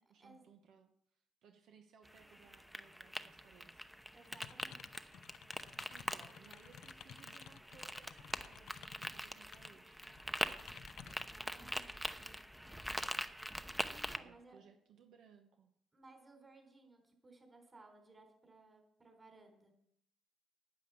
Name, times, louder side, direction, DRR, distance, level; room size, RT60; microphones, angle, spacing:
voice 1, 0.0-3.9 5.9-10.1 12.9-13.3 14.1-15.7, right 6 dB, 80° right, 5 dB, 1.2 m, -64 dB
sound 1, 2.1-14.2, equal, 5° right, 0.8 m, -44 dB
voice 2, 4.1-5.1 6.4-6.6 11.2-12.4 13.9-14.6 15.9-19.7, right 2 dB, 25° right, 5 dB, 3.9 m, -61 dB
sound 2, 4.3-9.7 10.1-11.3, left 9 dB, 75° left, 0.6 m, -55 dB
9.9 x 9.3 x 7.0 m, 0.73 s
cardioid pair, 90°, 0 cm